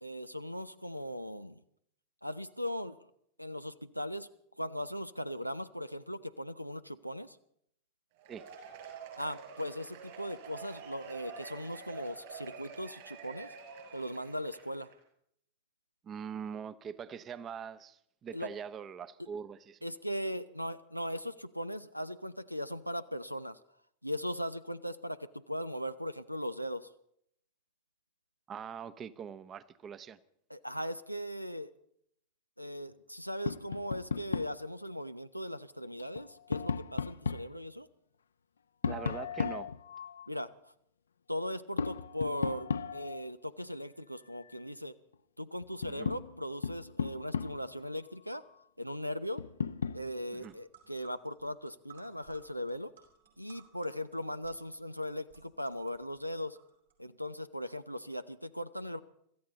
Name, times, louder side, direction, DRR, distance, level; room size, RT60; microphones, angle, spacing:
voice 1, 0.0-1.6 2.2-3.0 3.4-4.3 4.6-7.4 9.2-13.5 13.9-14.9 18.3-18.5 19.8-23.6 24.0-26.9 30.5-31.7 32.6-37.9 40.3-40.7 41.3-44.9 45.4-48.4 48.8-49.4 49.9-52.9 53.4-56.6 57.0-59.0, equal, 90° right, 0.5 m, -39 dB
Cheering / Applause / Crowd, 8.1-15.0, right 6 dB, 50° right, 7.0 m, -48 dB
voice 2, 16.0-19.8 28.5-30.2 38.8-39.7 45.9-46.1 50.3-50.5, right 7 dB, 25° right, 0.8 m, -43 dB
Tap, 33.5-34.6 36.0-37.5 38.8-40.3 41.8-43.3 45.1-45.2 45.6-47.8 49.4-50.1, left 6 dB, 70° left, 0.5 m, -35 dB
sound 1, 50.1-50.2 50.4-56.9, right 8 dB, 70° right, 5.5 m, -61 dB
25.5 x 14.0 x 4.0 m
figure-of-eight pair, 90°, 0 cm